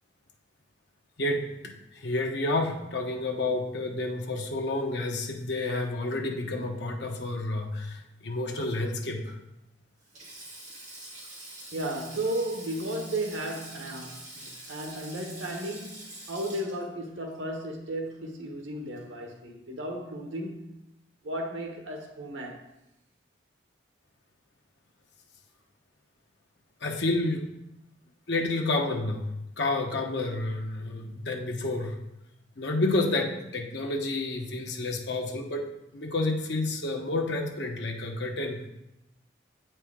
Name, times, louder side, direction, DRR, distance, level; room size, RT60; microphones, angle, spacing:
voice 1, 1.2-9.4 26.8-27.4 28.3-32.0 32.6-38.7, left 2 dB, 70° left, 0.9 m, -30 dB
Sink (filling or washing), 10.0-18.5 18.7-19.0 20.2-20.4, right 1 dB, 40° right, 1.9 m, -46 dB
voice 2, 11.7-20.8 21.2-22.7, right 1 dB, 90° right, 1.1 m, -34 dB
8.1 x 4.5 x 3.6 m
head